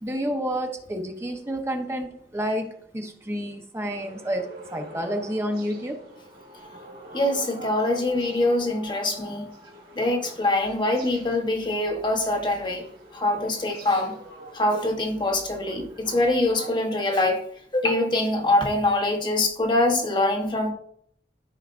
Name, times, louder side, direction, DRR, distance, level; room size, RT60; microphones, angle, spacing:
voice 1, 0.0-6.0 9.6-9.7, equal, 15° right, 0.9 m, -30 dB
sound 1, 3.9-16.7, right 1 dB, 55° right, 2.3 m, -45 dB
voice 2, 7.1-9.5 9.9-12.9 13.1-14.2 14.5-17.5 17.7-20.7, left 2 dB, 25° left, 0.9 m, -24 dB
13.5 x 4.9 x 2.5 m
head